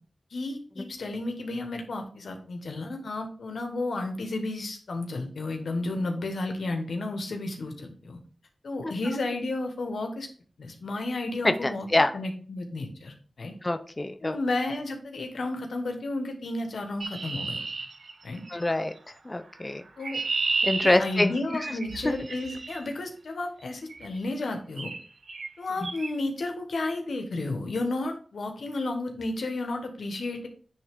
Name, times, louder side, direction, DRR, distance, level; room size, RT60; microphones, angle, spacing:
voice 1, 0.3-8.2 8.6-10.3 10.6-11.9 12.1-13.5 14.2-17.6 18.2-18.4 20.0-20.2 20.8-24.9 25.6-30.5, left 2 dB, 90° left, 4 dB, 1.2 m, -32 dB
voice 2, 11.4-12.1 13.6-14.4 18.5-18.9 19.3-19.8 20.6-21.3, left 2 dB, 30° left, 9 dB, 0.5 m, -25 dB
Chirp tweet, 17.0-18.6 19.6-22.8 23.9-24.2 24.8-25.0 25.3-25.5 25.8-26.1, right 3 dB, 75° right, 0.8 m, -32 dB
9.6 x 3.3 x 3.5 m, 0.43 s
cardioid pair, 50°, 0 cm